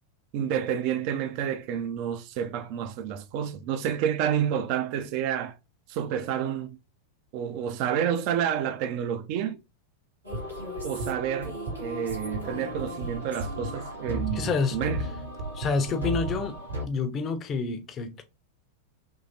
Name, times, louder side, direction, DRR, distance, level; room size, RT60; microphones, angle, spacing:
voice 1, 0.3-5.5 5.9-6.8 7.3-9.6 10.8-15.0, right 9 dB, 45° right, 0.5 m, -29 dB
sound 1, 10.2-16.9, right 1 dB, 85° right, 1.9 m, -34 dB
voice 2, 14.3-14.8 15.5-16.6 16.8-18.2, left 4 dB, 30° left, 0.6 m, -28 dB
3.8 x 3.1 x 2.8 m
figure-of-eight pair, 90°, 0 cm